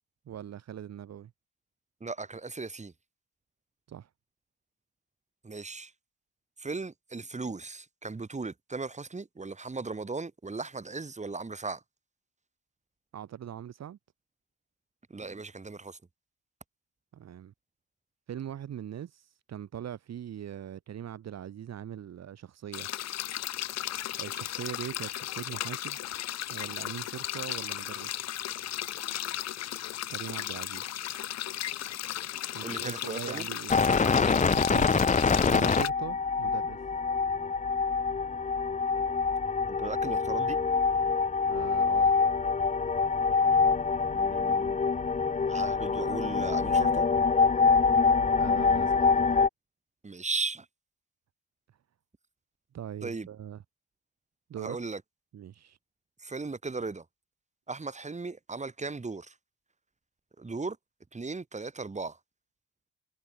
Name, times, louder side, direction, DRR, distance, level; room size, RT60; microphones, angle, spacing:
voice 1, 0.3-1.3 3.9-4.1 13.1-14.0 17.1-17.5 18.3-22.9 24.2-26.0 26.5-28.1 30.1-31.0 32.5-33.8 34.5-35.1 35.4-36.8 41.5-42.1 48.4-49.1 52.7-53.6 54.5-54.8 55.3-55.8, right 10 dB, 60° right, 2.1 m, -41 dB
voice 2, 2.0-2.9 5.4-5.9 6.6-11.8 15.1-16.0 32.6-33.5 39.7-40.6 44.1-44.8 45.4-47.1 50.0-50.7 53.0-53.3 54.6-55.0 56.2-57.1 57.7-59.3 60.4-60.8 61.1-62.2, right 3 dB, 25° right, 4.0 m, -37 dB
sound 1, 22.7-35.9, left 13 dB, 60° left, 0.7 m, -35 dB
sound 2, 33.7-49.5, left 5 dB, 25° left, 1.0 m, -25 dB
cardioid pair, 90°, 30 cm